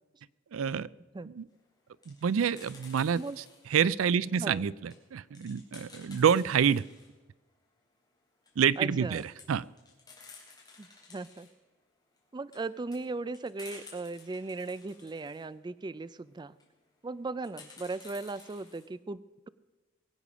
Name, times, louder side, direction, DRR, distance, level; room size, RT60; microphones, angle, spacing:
voice 1, 0.5-0.9 1.3-1.4 2.1-3.2 3.7-6.8 8.6-9.6, right 7 dB, 85° right, 21 dB, 0.4 m, -27 dB
sound 1, 1.7-3.8 4.3-7.1 7.5-7.6 7.8-7.9 8.3-8.8 9.1-11.5 12.2-15.4 16.4-16.7 17.4-18.8, left 4 dB, 20° left, 3.7 m, -53 dB
voice 2, 8.8-9.3 10.8-11.5 12.3-16.6 17.0-19.5, right 3 dB, 20° right, 16 dB, 0.4 m, -38 dB
21.5 x 8.4 x 6.2 m, 1.2 s
head